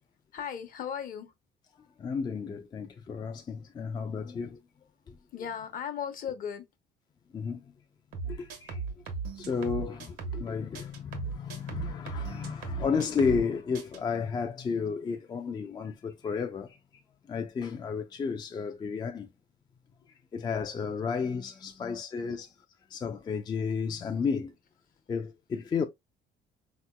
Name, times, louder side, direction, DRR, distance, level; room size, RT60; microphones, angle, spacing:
voice 1, 0.3-1.3 5.3-6.7 21.7-21.8 22.3-22.4, left 8 dB, 55° left, 0.8 m, -37 dB
voice 2, 2.0-4.6 5.1-5.2 7.3-7.6 8.3-8.8 9.4-16.8 17.3-19.3 20.3-22.5 22.9-24.5 25.1-25.8, left 5 dB, 25° left, 0.3 m, -32 dB
sound 1, 8.1-10.5 10.7-13.5 13.7-14.0, right 4 dB, 85° right, 1.0 m, -37 dB
3.6 x 2.9 x 2.2 m
cardioid pair, 110°, 17 cm